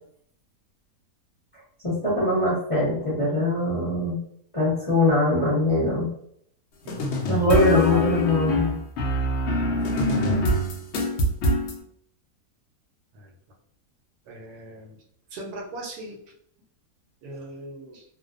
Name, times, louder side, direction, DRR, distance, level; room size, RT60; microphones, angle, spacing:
voice 1, 1.8-4.2 4.5-6.1 7.3-8.7, left 1 dB, 30° left, -7 dB, 0.7 m, -22 dB
sound 1, 6.9-11.8, left 1 dB, 85° left, 0.6 m, -24 dB
voice 2, 9.6-10.0 13.1-13.3 14.3-15.0 15.3-16.2 17.2-18.0, right 1 dB, 75° right, 1 dB, 1.1 m, -40 dB
2.6 x 2.1 x 2.4 m, 0.69 s
omnidirectional pair, 1.7 m